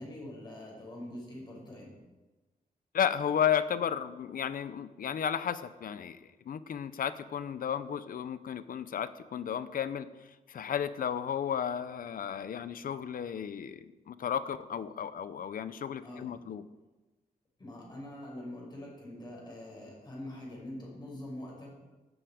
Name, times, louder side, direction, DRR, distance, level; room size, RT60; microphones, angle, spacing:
voice 1, 0.0-1.9 16.0-16.3 17.6-21.7, left 1 dB, 30° left, -3 dB, 6.2 m, -44 dB
voice 2, 2.9-10.1 10.5-16.6, left 8 dB, 65° left, 13 dB, 0.8 m, -33 dB
16.5 x 13.5 x 5.2 m, 1.2 s
wide cardioid pair, 170°, 16 cm